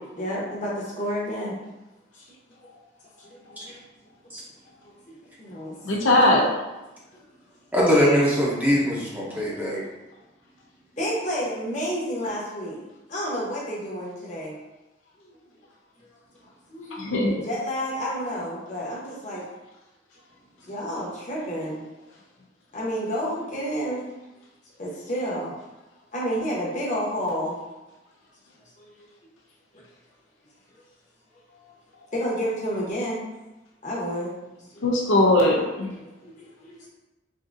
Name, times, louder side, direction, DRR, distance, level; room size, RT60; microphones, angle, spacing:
voice 1, 0.2-1.6 2.1-2.3 3.2-3.7 4.8-5.7 7.1-7.2 9.3-9.6 11.0-12.8 13.1-14.5 15.3-15.4 16.7-17.1 17.4-19.4 20.6-21.8 22.7-24.0 24.8-25.5 26.1-27.6 28.8-29.1 29.7-29.8 32.1-33.2 33.8-34.3 34.7-34.8 36.2-36.8, equal, 40° left, -5 dB, 0.9 m, -30 dB
voice 2, 5.8-6.4 16.9-17.4 34.8-36.0, left 1 dB, 90° left, -2 dB, 0.7 m, -20 dB
voice 3, 7.7-9.8, equal, 10° right, -6 dB, 0.6 m, -22 dB
3.6 x 2.7 x 2.5 m, 1.0 s
head